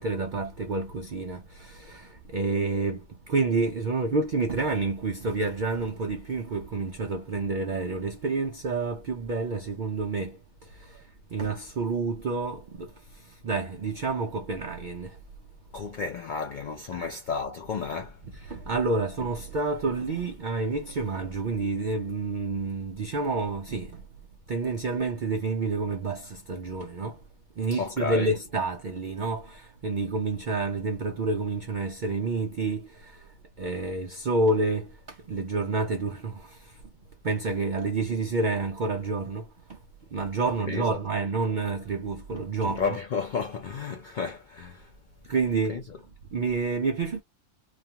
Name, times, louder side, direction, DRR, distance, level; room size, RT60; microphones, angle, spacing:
voice 1, 0.0-11.0 11.3-15.2 16.9-17.1 18.2-24.0 24.5-27.2 27.6-36.8 37.2-39.8 40.1-43.0 45.2-45.8 46.3-47.2, right 3 dB, 70° right, 0.4 m, -29 dB
voice 2, 15.7-18.2 27.7-28.3 40.7-41.0 42.6-44.9 45.7-45.8, left 5 dB, 75° left, 0.4 m, -32 dB
2.4 x 2.3 x 2.7 m
omnidirectional pair, 1.4 m